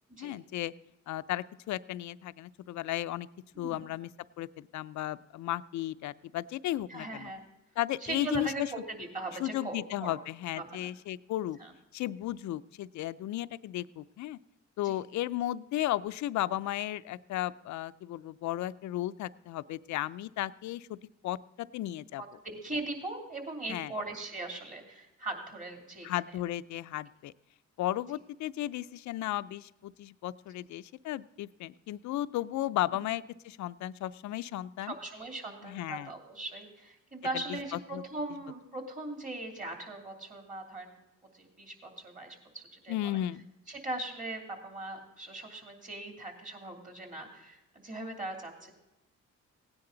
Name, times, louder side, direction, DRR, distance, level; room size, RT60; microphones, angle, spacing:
voice 1, 0.2-0.7 1.1-3.3 3.6-4.1 4.4-7.3 7.8-8.7 9.4-11.6 11.9-14.4 14.8-20.9 21.2-22.2 23.7-23.9 26.0-27.3 27.8-34.9 35.6-36.1 37.9-38.0 42.9-43.4, left 14 dB, 70° left, 15 dB, 0.5 m, -34 dB
voice 2, 6.9-7.5 8.0-10.2 10.5-10.9 11.6-11.7 14.8-15.0 22.2-26.4 32.9-33.1 34.8-41.0 41.3-43.2 43.7-48.7, right 2 dB, 25° right, 3 dB, 2.8 m, -40 dB
17.0 x 9.8 x 3.9 m, 0.95 s
cardioid pair, 90°, 30 cm